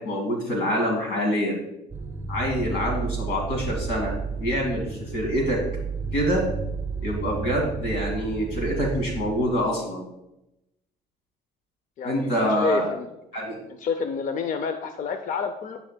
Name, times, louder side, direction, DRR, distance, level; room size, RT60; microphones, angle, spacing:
voice 1, 0.0-1.6 2.3-5.6 6.1-6.5 7.0-10.0 12.0-12.9 13.3-13.6, equal, 90° left, 0 dB, 2.3 m, -26 dB
sound 1, 1.9-9.6, right 5 dB, 15° right, 0.9 m, -32 dB
voice 2, 12.0-13.1 13.8-15.8, left 6 dB, 50° left, 8 dB, 0.5 m, -29 dB
10.0 x 5.4 x 2.2 m, 0.89 s
cardioid pair, 110°, 17 cm